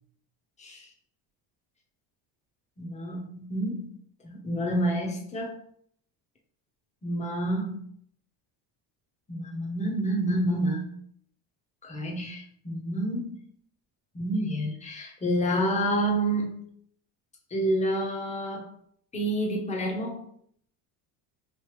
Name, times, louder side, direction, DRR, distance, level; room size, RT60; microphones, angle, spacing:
voice 1, 0.6-0.9 2.8-3.9 4.2-5.6 7.0-7.8 9.3-11.0 11.8-13.4 14.1-16.7 17.5-18.7 19.1-20.3, right 1 dB, 15° left, 0 dB, 0.8 m, -29 dB
3.3 x 2.7 x 3.1 m, 0.64 s
cardioid pair, 115°, 48 cm